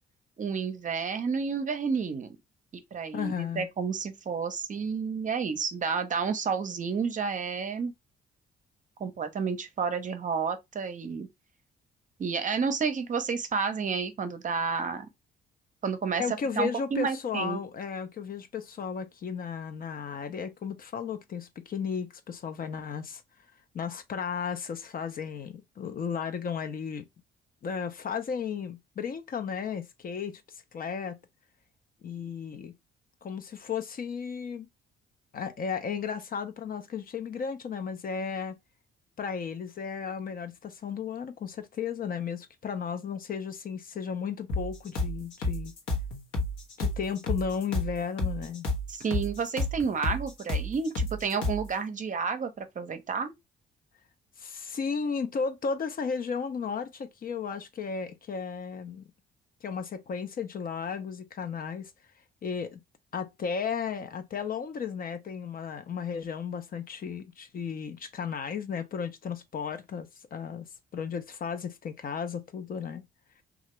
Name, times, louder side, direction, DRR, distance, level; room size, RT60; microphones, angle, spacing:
voice 1, 0.4-2.4 2.7-7.9 9.0-11.3 12.2-15.1 15.8-17.6 48.9-53.3, right 5 dB, 40° right, 0.6 m, -30 dB
voice 2, 3.1-3.7 16.2-23.2 23.7-27.1 27.6-30.4 30.7-31.2 32.0-32.7 33.2-34.7 35.3-38.6 39.2-45.7 46.8-48.7 54.4-59.1 59.6-61.9 62.4-62.8 63.1-70.7 70.9-73.0, left 6 dB, 45° left, 0.5 m, -34 dB
sound 1, 44.5-51.7, left 2 dB, 80° left, 1.0 m, -31 dB
2.8 x 2.4 x 3.0 m
cardioid pair, 90°, 20 cm